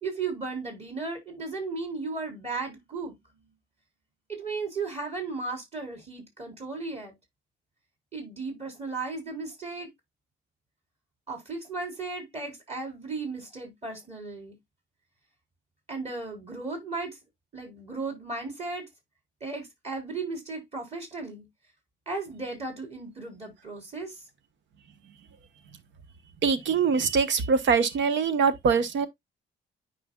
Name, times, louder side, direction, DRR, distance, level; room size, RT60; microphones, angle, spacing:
voice 1, 0.0-3.1 4.3-7.2 8.1-9.9 11.3-14.6 15.9-17.2 17.5-18.9 19.4-21.5 22.1-24.2, right 3 dB, 30° right, 4.1 m, -35 dB
voice 2, 26.4-29.1, right 5 dB, 70° right, 1.1 m, -23 dB
9.9 x 5.0 x 2.3 m
cardioid pair, 90°, 20 cm